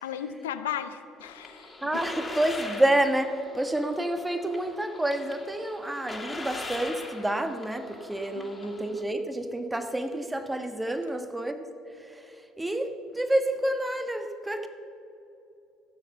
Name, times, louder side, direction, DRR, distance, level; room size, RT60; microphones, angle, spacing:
voice 1, 0.0-2.0 8.4-8.7, left 9 dB, 85° left, 11 dB, 0.6 m, -36 dB
sound 1, 1.2-9.0, left 2 dB, 20° left, 2.3 m, -41 dB
voice 2, 1.8-11.6 12.0-14.7, right 1 dB, 10° right, 7 dB, 1.3 m, -29 dB
16.0 x 7.3 x 6.8 m, 2.8 s
hypercardioid pair, 65°, 0 cm